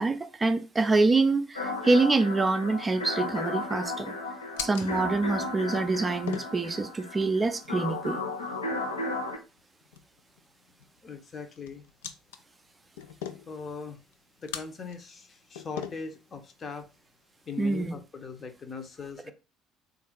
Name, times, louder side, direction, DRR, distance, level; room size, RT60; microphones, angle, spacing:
voice 1, 0.0-4.1 4.6-8.2 17.6-17.9, right 3 dB, 20° right, 0.5 m, -26 dB
sound 1, 1.5-9.4, left 2 dB, 85° left, 0.8 m, -34 dB
sound 2, 2.6-17.9, left 9 dB, 70° left, 0.4 m, -45 dB
voice 2, 11.0-11.8 13.5-14.0 14.4-16.9 17.5-19.3, left 5 dB, 35° left, 0.8 m, -40 dB
3.6 x 2.6 x 4.4 m
figure-of-eight pair, 60°, 0 cm